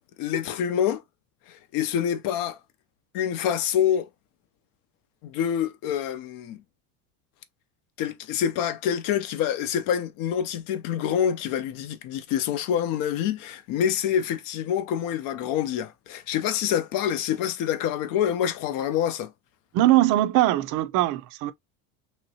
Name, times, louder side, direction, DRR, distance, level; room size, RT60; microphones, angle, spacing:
voice 1, 0.2-1.0 1.5-2.6 3.1-4.1 5.2-6.6 8.0-19.3, left 9 dB, 55° left, 0.6 m, -26 dB
voice 2, 19.7-21.5, right 15 dB, 50° right, 0.5 m, -21 dB
3.0 x 2.8 x 2.8 m
cardioid pair, 135°, 40 cm